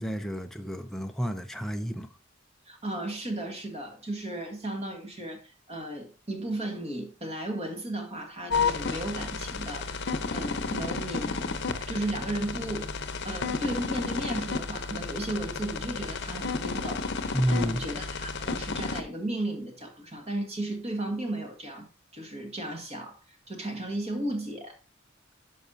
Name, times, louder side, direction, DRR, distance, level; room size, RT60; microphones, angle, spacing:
voice 1, 0.0-2.1 17.3-17.8, equal, ahead, 0.5 m, -30 dB
voice 2, 2.7-11.4 11.9-12.9 13.2-21.9 22.1-23.2 23.5-24.8, right 1 dB, 30° right, 1.9 m, -35 dB
sound 1, 8.5-19.0, left 4 dB, 60° left, 0.8 m, -32 dB
12.0 x 5.4 x 2.7 m
head